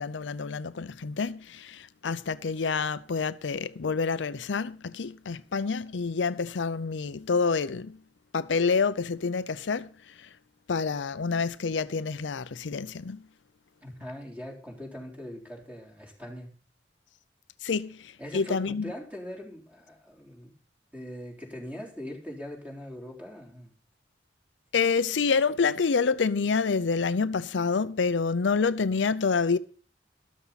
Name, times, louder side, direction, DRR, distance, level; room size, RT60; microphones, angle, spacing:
voice 1, 0.0-8.0 8.3-9.9 10.2-10.3 10.7-13.2 17.6-18.8 24.7-29.6, left 5 dB, 85° left, 0.6 m, -27 dB
voice 2, 13.8-16.5 18.2-20.6 20.9-23.7, left 1 dB, 10° right, 3.6 m, -41 dB
13.0 x 13.0 x 4.1 m
head